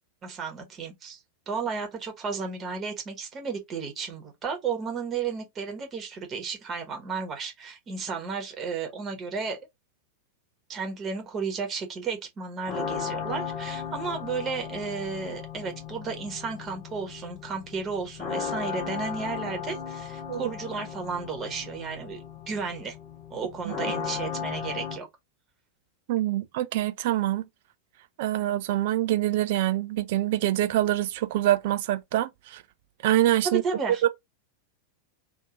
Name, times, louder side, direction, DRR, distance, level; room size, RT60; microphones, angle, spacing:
voice 1, 0.2-9.6 10.7-23.0 23.3-25.1 33.4-34.0, right 5 dB, 25° right, 1.1 m, -33 dB
sound 1, 12.7-25.0, left 7 dB, 40° left, 1.0 m, -36 dB
voice 2, 26.1-27.4 28.2-32.6 33.0-33.6 34.0-34.1, right 14 dB, 50° right, 0.4 m, -25 dB
2.7 x 2.6 x 3.7 m
figure-of-eight pair, 90°, 0 cm